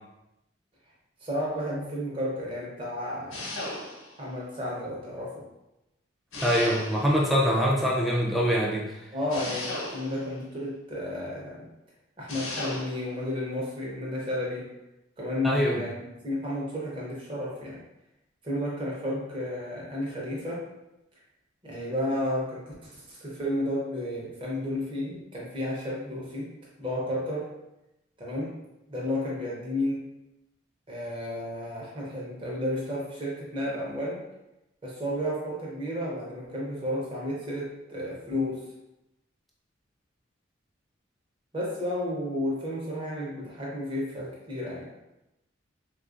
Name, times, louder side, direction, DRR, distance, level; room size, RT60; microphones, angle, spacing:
voice 1, 1.2-3.5 4.2-5.4 9.1-11.7 12.2-14.7 15.2-17.8 18.4-20.7 21.6-26.5 26.8-27.6 28.2-28.5 28.9-30.1 30.9-34.2 34.8-38.7 41.5-44.9, left 1 dB, 25° right, -4 dB, 0.7 m, -32 dB
sound 1, 3.3-4.2 6.3-7.3 9.3-10.3 12.3-13.1, left 1 dB, 80° left, 0.7 m, -35 dB
voice 2, 6.4-8.9 15.4-15.8, equal, ahead, -4 dB, 0.4 m, -24 dB
3.4 x 2.3 x 2.5 m, 0.91 s
head